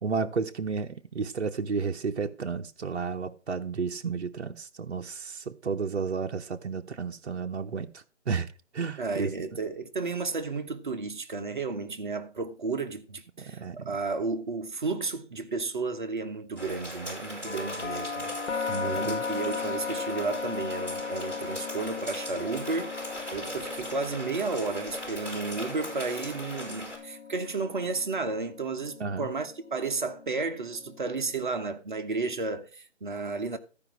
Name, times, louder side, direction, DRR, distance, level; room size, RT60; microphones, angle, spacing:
voice 1, 0.0-9.3 13.4-14.0 18.7-19.2 29.0-29.3, right 5 dB, 60° right, 0.9 m, -32 dB
voice 2, 9.0-33.6, right 4 dB, 40° right, 1.1 m, -33 dB
sound 1, 16.6-27.0, equal, 5° left, 5.4 m, -39 dB
sound 2, 17.4-31.3, left 5 dB, 90° left, 1.0 m, -38 dB
13.0 x 5.2 x 6.0 m
figure-of-eight pair, 165°, 36 cm